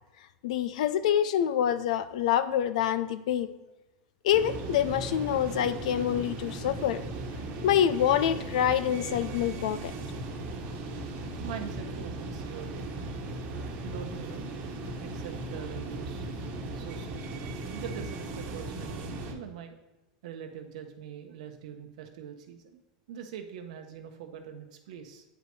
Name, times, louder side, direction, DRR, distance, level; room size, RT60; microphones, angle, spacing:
voice 1, 0.4-3.5 4.2-7.0 7.6-9.9, left 10 dB, 80° left, 14 dB, 0.5 m, -26 dB
sound 1, 4.3-19.3, right 2 dB, 45° right, 1.2 m, -37 dB
voice 2, 11.4-12.9 13.8-14.5 15.0-16.2 16.7-17.3 17.7-19.7 20.2-22.8 23.1-25.2, right 8 dB, 75° right, 4 dB, 0.8 m, -43 dB
8.8 x 5.2 x 3.2 m, 1.0 s
supercardioid pair, 135°, 4 cm